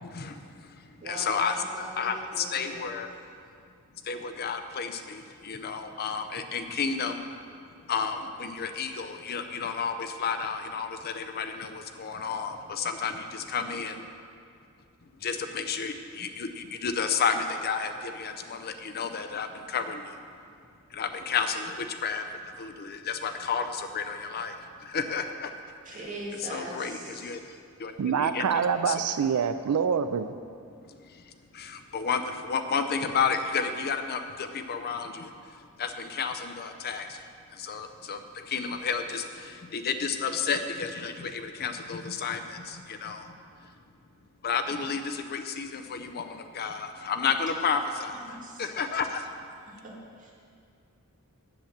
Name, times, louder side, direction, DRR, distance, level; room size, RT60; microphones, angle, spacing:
voice 1, 0.0-1.6 2.0-3.1 4.0-7.2 7.9-14.1 15.2-20.2 20.9-25.5 25.9-26.0 26.4-27.4 27.8-27.9 28.2-29.0 30.9-43.7 44.4-49.4, left 5 dB, 45° left, 8 dB, 0.5 m, -32 dB
voice 2, 1.0-1.4 1.7-2.8 25.8-27.4 48.2-48.7 49.7-50.3, right 1 dB, 35° right, -4 dB, 2.2 m, -41 dB
voice 3, 28.0-30.3, right 7 dB, 85° right, 11 dB, 0.4 m, -26 dB
8.0 x 7.3 x 7.2 m, 2.3 s
head